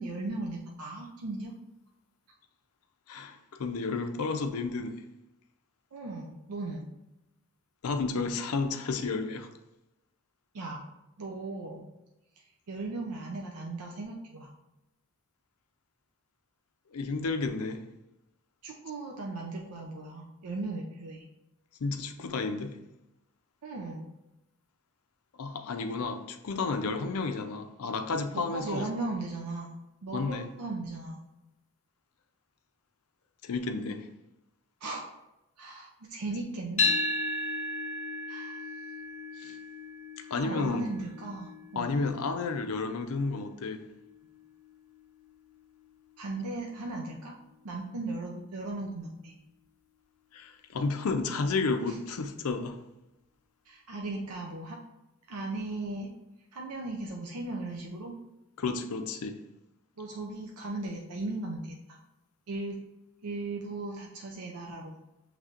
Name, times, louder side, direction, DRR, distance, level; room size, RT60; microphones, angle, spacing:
voice 1, 0.0-1.5 5.9-6.9 10.5-10.9 11.2-11.9 12.4-14.5 18.6-21.2 23.6-24.1 28.3-29.7 30.0-31.2 34.8-35.1 35.6-37.0 38.3-38.6 40.3-42.1 46.2-47.4 47.6-49.3 51.9-52.0 53.7-54.8 55.3-56.1 56.5-58.1 60.0-62.0 62.5-62.8 63.2-65.0, right 2 dB, 85° right, 0.5 m, -37 dB
voice 2, 3.1-5.0 7.8-9.5 16.9-17.8 21.8-22.8 25.4-28.9 30.1-30.5 33.4-34.1 39.4-39.6 40.3-40.9 41.8-43.8 50.3-52.8 58.6-59.4, left 4 dB, 70° left, 0.5 m, -31 dB
sound 1, 36.8-45.0, left 3 dB, 35° left, 0.7 m, -35 dB
6.5 x 3.2 x 2.4 m
head